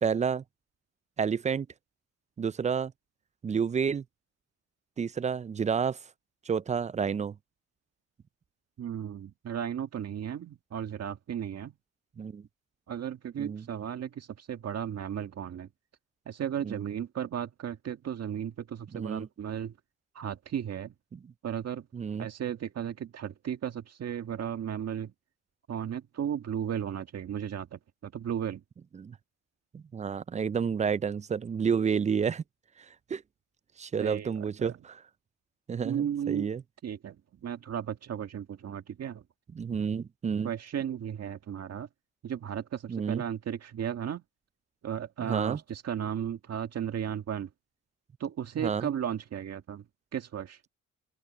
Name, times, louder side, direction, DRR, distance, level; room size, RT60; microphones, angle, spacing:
voice 1, 0.0-0.4 1.2-1.7 2.4-2.9 3.4-4.0 5.0-6.0 6.5-7.4 12.2-12.5 13.4-13.6 16.6-16.9 18.9-19.3 21.1-21.2 21.9-22.3 28.9-29.2 29.7-32.4 33.1-33.2 33.8-34.7 35.7-36.6 39.5-40.5 42.9-43.2 45.2-45.6 48.6-48.9, right 6 dB, 25° right, 0.4 m, -30 dB
voice 2, 8.8-11.7 12.9-15.7 16.3-19.8 20.2-20.9 21.4-21.9 22.2-25.1 25.7-28.6 34.0-34.8 35.8-36.5 36.8-37.2 37.4-39.2 40.4-41.9 42.2-44.2 44.8-47.5 48.2-49.8 50.1-50.6, right 9 dB, 55° right, 1.8 m, -35 dB
open air
cardioid pair, 90°, 30 cm